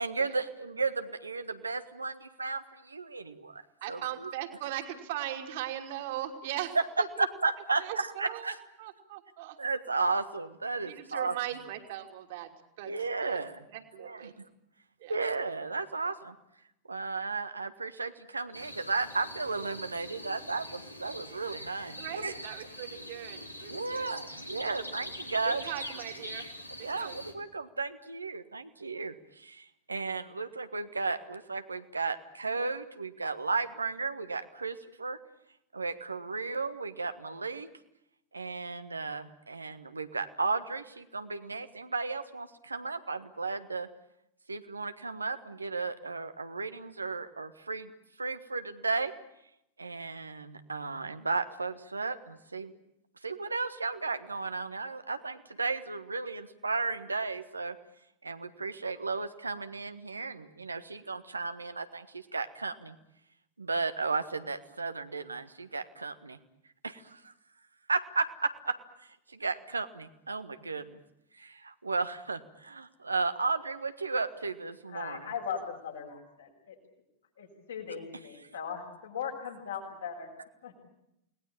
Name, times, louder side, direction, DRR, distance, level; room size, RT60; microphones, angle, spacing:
voice 1, 0.0-3.6 3.9-4.3 6.7-8.6 9.6-11.4 12.8-13.6 14.0-14.4 15.1-16.3 16.9-22.4 23.7-25.9 26.8-35.2 35.7-37.7 38.3-43.9 44.5-47.9 48.2-49.1 49.8-52.7 53.2-57.8 58.2-63.0 63.6-66.4 66.8-67.3 67.9-71.0 71.4-75.3, right 4 dB, 80° right, 10 dB, 1.5 m, -34 dB
voice 2, 3.8-6.8 7.2-7.3 7.8-9.6 10.8-12.5 12.8-12.9 13.2-13.4 13.7-14.3 15.0-15.1 22.0-24.1 25.5-26.5 26.8-27.1, right 13 dB, 50° right, 5 dB, 3.0 m, -39 dB
sound 1, 18.5-27.3, left 1 dB, 90° left, 2.6 m, -43 dB
voice 3, 74.9-76.8 77.4-80.3 80.6-80.7, left 7 dB, 70° left, 1 dB, 6.9 m, -39 dB
29.0 x 19.5 x 8.9 m, 0.83 s
figure-of-eight pair, 90°, 0 cm